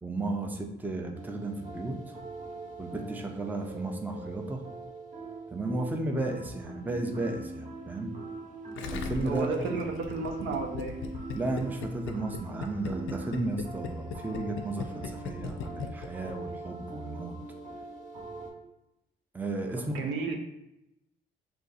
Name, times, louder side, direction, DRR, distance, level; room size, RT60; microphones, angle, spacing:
voice 1, 0.0-2.2 2.8-4.6 5.5-8.1 8.9-9.8 11.3-17.4 19.3-20.0, right 2 dB, 10° right, 3 dB, 0.4 m, -34 dB
sound 1, 1.1-18.5, right 3 dB, 40° right, 0.9 m, -42 dB
Gurgling, 8.8-16.3 16.6-16.7, left 6 dB, 80° left, 0.4 m, -38 dB
voice 2, 9.2-10.9 19.8-20.4, right 4 dB, 85° right, 3 dB, 0.6 m, -32 dB
2.6 x 2.3 x 3.8 m, 0.88 s
cardioid pair, 90°, 20 cm